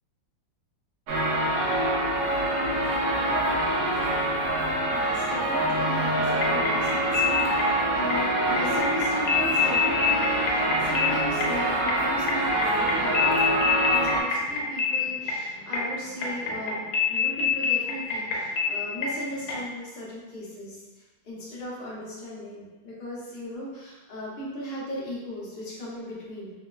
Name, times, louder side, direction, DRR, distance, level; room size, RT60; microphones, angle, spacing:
sound 1, 1.1-14.2, right 1 dB, 75° right, 0.9 m, -25 dB
sound 2, 4.9-5.7 6.0-11.6 11.9-19.2 19.5-19.6, left 6 dB, 75° left, 1.2 m, -27 dB
voice 1, 4.9-26.5, equal, 60° left, -8 dB, 0.6 m, -37 dB
3.2 x 2.1 x 2.2 m, 1.2 s
omnidirectional pair, 2.1 m